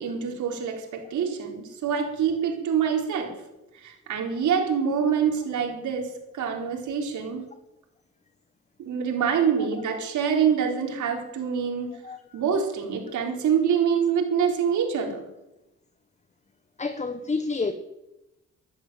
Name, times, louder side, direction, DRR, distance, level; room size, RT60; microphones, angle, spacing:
voice 1, 0.0-3.3 3.8-7.5 8.8-12.0 12.3-15.2, right 7 dB, 75° right, 4.4 m, -26 dB
voice 2, 16.8-17.7, left 4 dB, 25° left, 1.3 m, -28 dB
13.0 x 12.0 x 9.1 m
cardioid pair, 90°, 30 cm